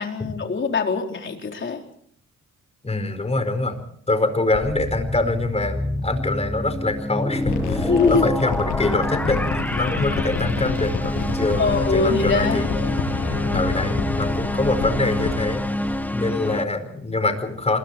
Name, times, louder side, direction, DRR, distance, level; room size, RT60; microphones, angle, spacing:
voice 1, 0.0-1.8 7.9-8.2 11.6-13.0, left 4 dB, 40° left, 3 dB, 4.3 m, -23 dB
voice 2, 2.8-12.6 13.5-17.8, left 2 dB, 20° left, 8 dB, 4.8 m, -25 dB
sound 1, 4.5-16.7, left 1 dB, 5° left, 1.2 m, -27 dB
sound 2, 7.4-16.0, left 4 dB, 70° left, 7.7 m, -28 dB
26.5 x 22.5 x 4.6 m, 0.63 s
cardioid pair, 90°, 30 cm